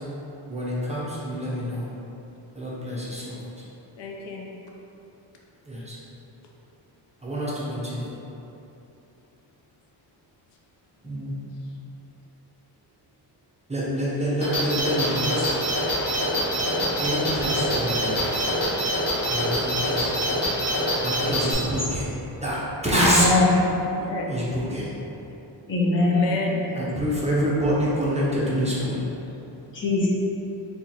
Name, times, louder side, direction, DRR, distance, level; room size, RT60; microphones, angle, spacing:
voice 1, 0.5-1.9 2.6-3.4 5.7-6.0 7.2-8.0 11.0-11.3 13.7-15.6 17.0-18.3 19.3-20.1 21.0-22.1 22.4-22.6 22.8-23.3 24.3-24.9 26.7-29.0, equal, 15° right, -8 dB, 0.7 m, -26 dB
voice 2, 4.0-4.5 11.6-11.7 23.7-24.4 24.8-25.0 26.0-26.6 29.7-29.8, left 2 dB, 75° left, -1 dB, 0.6 m, -32 dB
sound 1, 14.4-21.5, equal, 45° left, 1.2 m, -25 dB
voice 3, 22.9-23.4 25.7-26.3 29.7-30.1, left 2 dB, 25° left, -6 dB, 0.9 m, -21 dB
2.8 x 2.4 x 4.0 m, 2.9 s
cardioid pair, 95°, 44 cm